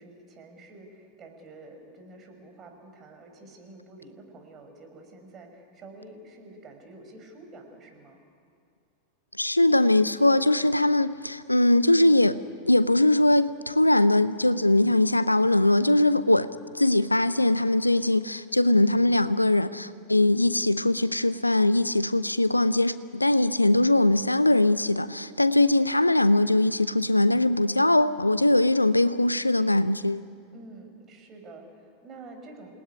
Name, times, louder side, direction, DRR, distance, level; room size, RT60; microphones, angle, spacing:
voice 1, 0.0-8.2 30.5-32.7, right 2 dB, 25° right, 5.8 m, -48 dB
voice 2, 9.4-12.4 12.7-16.5 16.7-30.2, left 1 dB, 85° left, 0.6 m, -21 dB
28.0 x 19.5 x 9.9 m
figure-of-eight pair, 90°, 0 cm